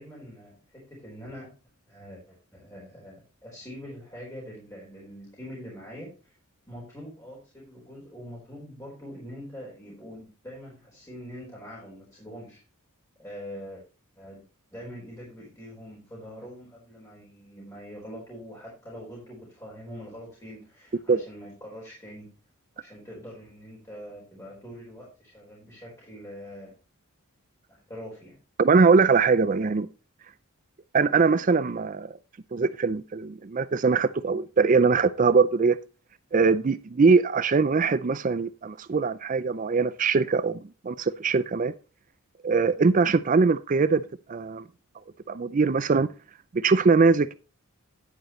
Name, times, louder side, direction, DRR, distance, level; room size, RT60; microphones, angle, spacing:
voice 1, 0.0-1.5 1.9-6.3 6.7-12.6 13.2-13.8 14.2-14.4 14.7-22.3 22.7-26.7 27.7-28.4, equal, 15° left, 4.4 m, -43 dB
voice 2, 28.6-29.9 30.9-32.1 32.5-35.8 36.3-41.7 42.4-44.0 44.3-44.6 45.3-46.1 46.5-47.3, right 4 dB, 35° right, 0.4 m, -22 dB
10.5 x 9.3 x 3.1 m
head